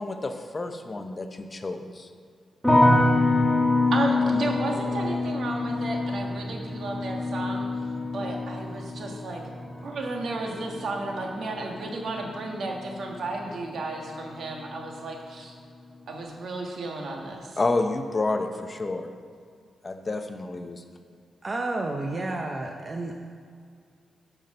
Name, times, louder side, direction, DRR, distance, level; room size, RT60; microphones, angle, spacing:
voice 1, 0.0-2.1 17.6-19.1 19.8-20.8, left 2 dB, 30° left, 7 dB, 0.7 m, -30 dB
sound 1, 2.6-13.7 14.0-14.7, left 2 dB, ahead, 1.5 m, -26 dB
voice 2, 3.9-7.7 8.1-9.4 9.8-15.5 16.1-17.6, right 2 dB, 65° right, 1 dB, 1.5 m, -33 dB
voice 3, 21.4-23.3, right 2 dB, 35° right, 2 dB, 0.7 m, -31 dB
9.1 x 6.0 x 5.4 m, 2.2 s
cardioid pair, 90°, 0 cm